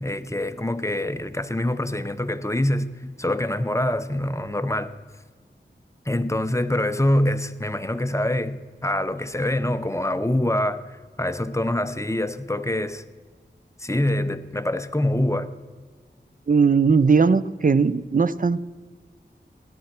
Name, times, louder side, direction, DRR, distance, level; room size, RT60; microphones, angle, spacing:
voice 1, 0.0-4.9 6.1-13.0 13.8-15.5, left 1 dB, 15° left, 10 dB, 0.8 m, -25 dB
voice 2, 16.5-18.6, right 5 dB, 45° right, 16 dB, 0.6 m, -19 dB
17.0 x 11.5 x 5.9 m, 1.5 s
wide cardioid pair, 50°, 19 cm